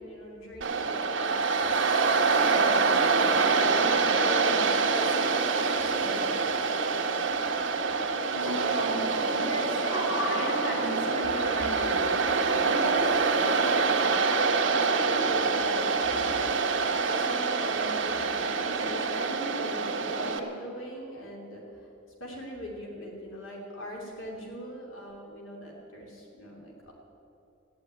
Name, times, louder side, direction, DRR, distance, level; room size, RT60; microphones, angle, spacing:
voice 1, 0.0-6.6 12.5-13.1 13.7-14.3 14.7-21.6 22.2-26.9, equal, 85° left, -1 dB, 2.7 m, -41 dB
Waves surf, 0.6-20.4, right 4 dB, 70° right, 1.4 m, -26 dB
voice 2, 8.2-14.1, equal, 60° left, -2 dB, 3.0 m, -35 dB
14.5 x 10.5 x 9.4 m, 2.9 s
head